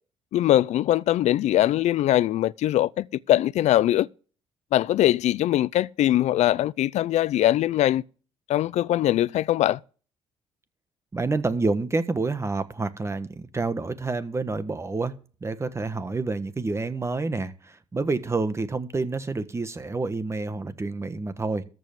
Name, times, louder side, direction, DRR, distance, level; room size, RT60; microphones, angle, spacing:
voice 1, 0.3-4.1 4.7-8.0 8.5-9.8, left 13 dB, 65° left, 0.6 m, -22 dB
voice 2, 11.1-13.3 13.5-15.1 15.4-21.6, right 3 dB, 20° right, 1.3 m, -28 dB
14.0 x 5.4 x 7.7 m
cardioid pair, 95°, 12 cm